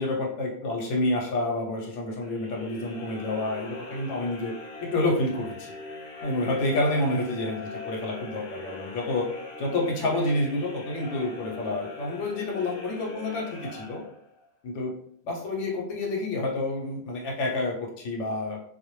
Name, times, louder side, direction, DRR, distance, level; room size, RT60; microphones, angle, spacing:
voice 1, 0.0-4.5 4.8-5.7 6.2-9.3 9.6-14.0 14.6-14.9 15.2-18.6, left 2 dB, 85° left, -1 dB, 0.9 m, -28 dB
sound 1, 2.2-14.5, left 2 dB, 60° left, 0.7 m, -41 dB
2.2 x 2.1 x 2.9 m, 0.64 s
omnidirectional pair, 1.2 m